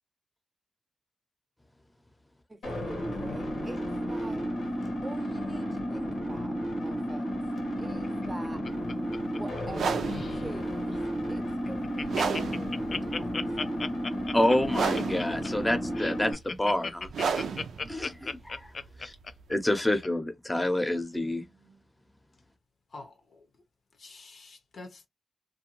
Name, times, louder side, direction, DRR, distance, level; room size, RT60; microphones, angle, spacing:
voice 1, 2.5-4.4 5.0-7.4 7.8-8.6 9.4-11.0 11.3-13.9, right 2 dB, 25° right, 0.6 m, -45 dB
sound 1, 2.6-16.3, equal, 90° left, 1.1 m, -33 dB
Laughter, 8.0-9.8 10.1-10.4 10.9-11.0 11.3-11.4 11.6-20.1 20.5-20.6, left 4 dB, 55° left, 0.3 m, -36 dB
sound 2, 9.6-19.5, right 6 dB, 90° right, 0.4 m, -34 dB
voice 2, 14.3-17.1 17.8-18.7 19.0-19.2 19.5-21.8, left 1 dB, 20° left, 0.7 m, -28 dB
voice 3, 22.9-23.5 24.0-25.1, left 3 dB, 70° left, 0.7 m, -47 dB
2.6 x 2.2 x 2.9 m
cardioid pair, 60°, 0 cm